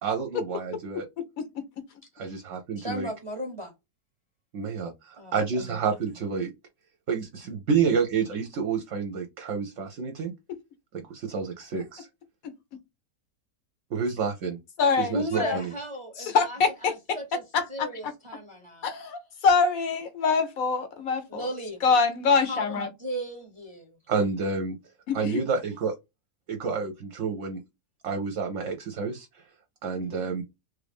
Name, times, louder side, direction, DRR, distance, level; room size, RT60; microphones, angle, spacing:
voice 1, 0.0-1.1 2.2-3.1 4.5-6.5 7.1-10.3 10.9-12.1 13.9-14.6 15.0-15.7 24.1-24.8 25.1-25.9 26.5-27.6 28.0-29.3 29.8-30.4, right 5 dB, 65° right, 0.9 m, -29 dB
voice 2, 2.8-3.7 5.2-5.4 5.7-5.8 15.1-17.4 17.7-18.9 21.3-21.8 22.4-24.0 29.9-30.1, equal, 25° right, 0.7 m, -35 dB
voice 3, 14.8-15.6 16.3-16.9 17.5-18.1 18.8-21.5 21.8-22.9 25.1-25.4, left 5 dB, 70° left, 1.0 m, -24 dB
3.1 x 2.5 x 3.4 m
omnidirectional pair, 1.6 m